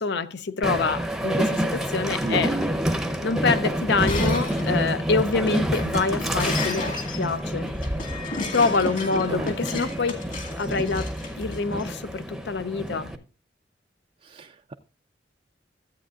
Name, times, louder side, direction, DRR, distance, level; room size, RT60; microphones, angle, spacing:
voice 1, 0.0-2.5 3.2-7.7 8.5-10.2 10.6-11.1 11.4-13.1, left 4 dB, 70° left, 0.7 m, -26 dB
Train, 0.6-13.2, equal, ahead, 0.8 m, -28 dB
voice 2, 2.2-2.7 8.8-9.6 9.9-10.0 14.2-14.7, right 3 dB, 35° right, 0.4 m, -33 dB
Shatter, 3.9-11.9, left 3 dB, 45° left, 2.0 m, -33 dB
13.5 x 8.4 x 2.4 m
head